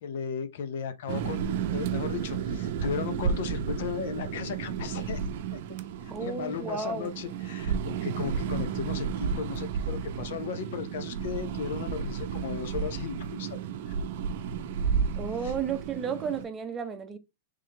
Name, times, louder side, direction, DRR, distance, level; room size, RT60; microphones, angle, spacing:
voice 1, 0.0-5.2 5.5-5.6 6.0-13.6 13.9-14.0 14.2-14.5 15.4-15.5, left 7 dB, 65° left, 0.7 m, -36 dB
sound 1, 1.1-16.4, right 7 dB, 60° right, 0.6 m, -32 dB
voice 2, 6.1-7.1 15.2-17.2, right 6 dB, 20° right, 0.7 m, -33 dB
3.7 x 3.3 x 3.3 m
hypercardioid pair, 135°, 0 cm